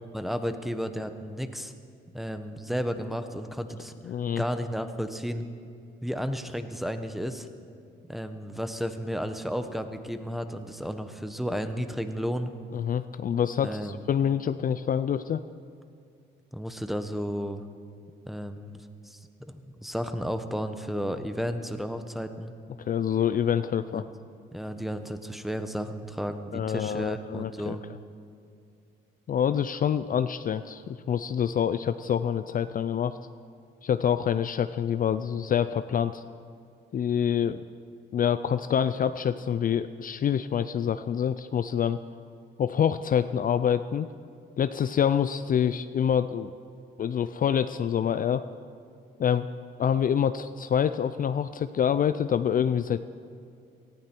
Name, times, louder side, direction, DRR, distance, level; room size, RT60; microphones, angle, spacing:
voice 1, 0.1-1.7 2.1-3.9 4.4-5.4 6.0-7.5 8.1-12.5 13.6-14.0 16.5-17.6 18.3-22.5 23.9-24.1 24.5-27.8, equal, ahead, 8 dB, 1.0 m, -33 dB
voice 2, 4.1-4.4 12.7-15.4 22.8-24.0 26.5-27.8 29.3-33.2 33.8-36.2 36.9-37.6 38.1-42.0 42.6-44.1 44.6-46.5 47.0-48.5 49.2-49.5 49.8-53.0, left 8 dB, 45° left, 12 dB, 0.4 m, -26 dB
18.5 x 14.5 x 4.5 m, 2.5 s
cardioid pair, 90°, 20 cm